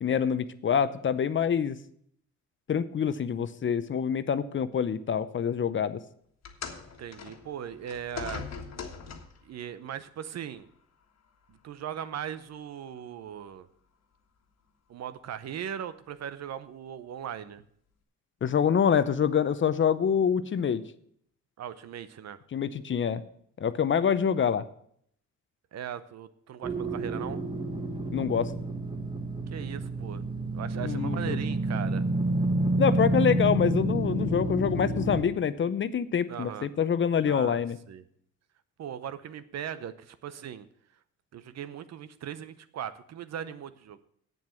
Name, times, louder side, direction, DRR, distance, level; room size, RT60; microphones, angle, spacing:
voice 1, 0.0-1.8 2.7-6.0 18.4-20.8 22.5-23.2 23.6-24.6 28.1-28.5 30.8-31.4 32.8-37.8, left 7 dB, 40° left, 14 dB, 0.7 m, -26 dB
sound 1, 6.4-9.5 10.5-10.7 11.5-11.6, left 6 dB, 60° left, 1.6 m, -40 dB
voice 2, 7.0-8.4 9.4-10.7 11.5-13.7 14.9-17.6 21.6-22.4 25.7-27.4 29.5-30.2 30.5-32.0 36.3-36.7 37.3-38.0 38.8-40.7 41.3-44.0, right 9 dB, 60° right, 14 dB, 0.8 m, -39 dB
sound 2, 26.6-35.2, right 2 dB, 15° right, 1.4 m, -29 dB
8.0 x 7.4 x 7.7 m, 0.66 s
cardioid pair, 90°, 30 cm